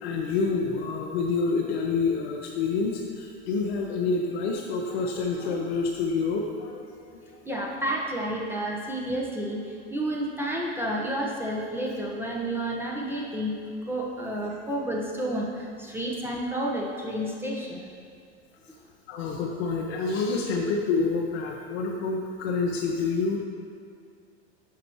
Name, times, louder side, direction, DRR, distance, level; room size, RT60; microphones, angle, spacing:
voice 1, 0.0-6.8 7.2-7.4 19.1-23.4, left 4 dB, 70° left, -1 dB, 0.9 m, -27 dB
voice 2, 7.4-13.5 13.9-17.9, right 1 dB, 5° right, -3 dB, 1.1 m, -30 dB
11.5 x 4.9 x 3.1 m, 2.2 s
hypercardioid pair, 85°, 33 cm